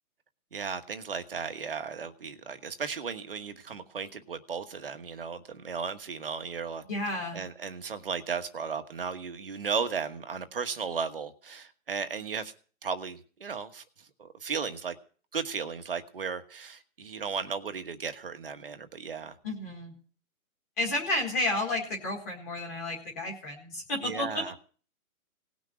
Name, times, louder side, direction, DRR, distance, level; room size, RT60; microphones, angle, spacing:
voice 1, 0.5-6.8 7.3-12.5 12.8-15.0 15.3-19.3 24.0-24.5, right 5 dB, 40° right, 8 dB, 1.3 m, -35 dB
voice 2, 6.9-7.4 19.4-19.9 20.8-24.4, left 2 dB, 10° left, -2 dB, 1.8 m, -31 dB
18.5 x 6.3 x 9.8 m, 0.42 s
hypercardioid pair, 180°, 43 cm